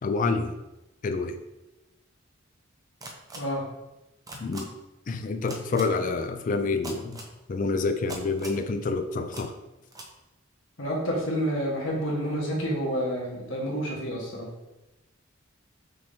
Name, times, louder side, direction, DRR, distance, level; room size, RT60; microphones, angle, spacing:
voice 1, 0.0-0.5 1.0-1.4 4.4-4.7 5.1-7.2 7.5-9.5, left 3 dB, 40° left, 8 dB, 0.3 m, -28 dB
sound 1, 3.0-3.4 4.3-4.6 5.5-5.8 6.8-7.3 8.1-8.6 9.3-9.4 9.9-10.1, right 2 dB, 20° right, 0.5 m, -39 dB
voice 2, 10.8-14.5, equal, 80° left, -3 dB, 1.3 m, -29 dB
5.4 x 3.5 x 2.7 m, 0.99 s
head